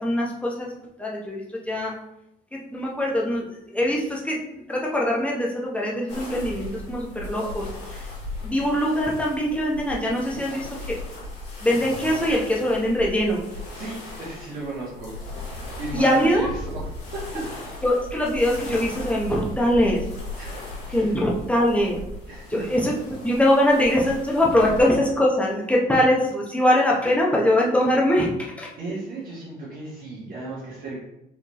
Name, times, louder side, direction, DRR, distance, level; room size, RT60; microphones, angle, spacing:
voice 1, 0.0-0.7 1.0-1.9 2.5-7.7 7.9-8.0 8.4-11.0 11.6-13.4 15.9-16.5 17.8-20.0 20.9-22.0 22.5-22.9 23.2-28.7, left 1 dB, 10° left, -3 dB, 1.0 m, -22 dB
sound 1, 6.1-24.8, left 2 dB, 85° left, 1.5 m, -37 dB
voice 2, 13.6-15.1 15.8-17.5 20.4-21.2 22.3-22.7 28.8-31.0, right 3 dB, 55° right, -7 dB, 1.5 m, -35 dB
4.6 x 3.4 x 3.2 m, 0.85 s
cardioid pair, 110°, 17 cm